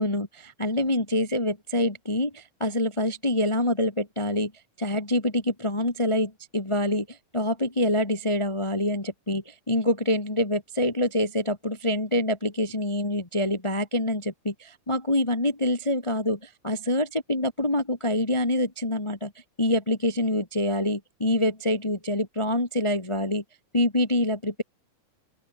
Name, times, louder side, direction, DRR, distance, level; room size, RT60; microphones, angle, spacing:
voice 1, 0.0-4.5 4.8-19.3 19.6-23.4 23.7-24.6, left 1 dB, 30° left, 0.5 m, -26 dB
open air
omnidirectional pair, 3.7 m